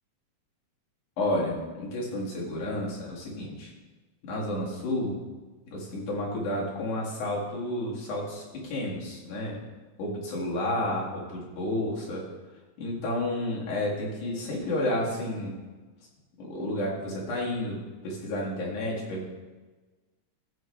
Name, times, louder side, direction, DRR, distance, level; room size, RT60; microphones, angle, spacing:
voice 1, 1.2-3.7 4.2-5.2 5.7-9.6 10.0-12.2 12.8-15.6 16.4-19.2, left 1 dB, 80° left, -4 dB, 3.6 m, -31 dB
14.0 x 7.8 x 3.3 m, 1.3 s
omnidirectional pair, 3.5 m